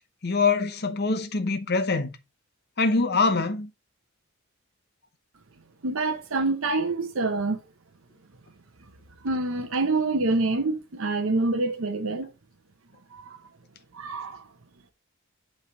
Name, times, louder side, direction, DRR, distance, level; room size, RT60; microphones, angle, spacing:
voice 1, 0.2-2.2 2.8-3.7, left 4 dB, 45° left, 0.8 m, -24 dB
voice 2, 5.8-7.6 9.2-12.3 13.1-13.4 13.9-14.4, right 3 dB, 65° right, 0.8 m, -26 dB
8.3 x 3.4 x 5.5 m
head